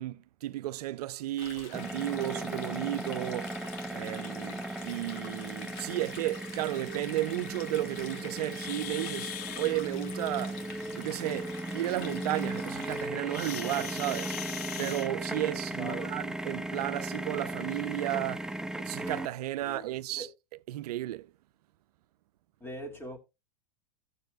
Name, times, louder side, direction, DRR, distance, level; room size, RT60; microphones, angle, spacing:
voice 1, 0.0-3.6 3.9-10.6 10.9-14.4 14.8-18.5 18.8-20.3 20.7-21.3, right 15 dB, 75° right, 0.5 m, -33 dB
Stream, 1.4-13.1, left 7 dB, 60° left, 2.2 m, -47 dB
sound 1, 1.7-19.3, right 1 dB, 5° right, 0.4 m, -37 dB
sound 2, 8.5-9.7 13.3-15.5 16.7-16.9 17.5-17.6 18.2-18.3 19.1-19.2 19.6-19.8, left 13 dB, 80° left, 0.6 m, -41 dB
voice 2, 15.8-16.2 19.6-20.3 22.6-23.2, equal, 10° left, 2.1 m, -41 dB
17.0 x 6.9 x 2.3 m
hypercardioid pair, 115°, 20 cm